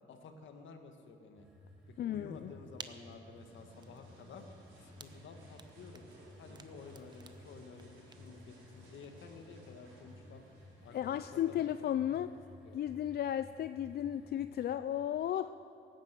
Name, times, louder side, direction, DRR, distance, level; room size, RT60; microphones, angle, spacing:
voice 1, 0.1-1.5 1.9-4.4 4.8-6.1 6.4-10.5 10.8-11.7 12.1-12.3 12.6-12.8, left 4 dB, 70° left, 5 dB, 1.7 m, -52 dB
sound 1, 1.3-14.7, left 1 dB, 5° right, 4.5 m, -57 dB
voice 2, 2.0-2.5 10.9-12.3 12.7-15.5, left 11 dB, 55° left, 12 dB, 0.4 m, -34 dB
sound 2, 2.3-9.4, right 3 dB, 20° right, 0.8 m, -56 dB
sound 3, 3.4-11.3, right 1 dB, 80° right, 4.4 m, -60 dB
17.0 x 10.0 x 7.6 m, 2.6 s
cardioid pair, 90°, 20 cm